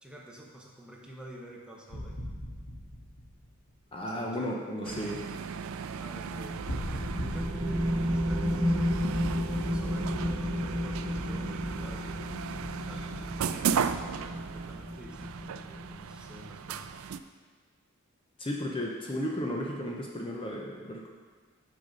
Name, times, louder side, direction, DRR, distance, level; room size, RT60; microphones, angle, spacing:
voice 1, 0.0-2.3 4.0-4.5 5.8-9.1 9.5-12.5 12.8-16.9, equal, 5° right, -2 dB, 0.9 m, -48 dB
sound 1, 1.9-3.8 6.7-7.8, equal, 85° left, 1.8 m, -37 dB
voice 2, 3.9-5.2 18.4-21.1, equal, 25° left, -1 dB, 0.7 m, -34 dB
sound 2, 4.8-17.2, right 7 dB, 75° right, 0.3 m, -36 dB
sound 3, 6.3-16.3, equal, 30° right, 1.3 m, -32 dB
6.7 x 6.3 x 5.2 m, 1.5 s
head